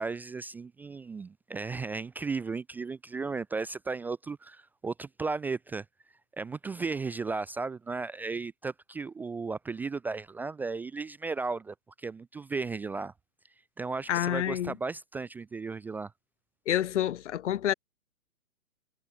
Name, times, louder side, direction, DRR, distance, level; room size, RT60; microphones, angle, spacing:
voice 1, 0.0-5.8 6.4-13.1 13.8-16.1, right 4 dB, 5° right, 0.5 m, -35 dB
voice 2, 14.1-14.8 16.7-17.7, left 11 dB, 55° left, 1.9 m, -28 dB
hypercardioid pair, 130°, 42 cm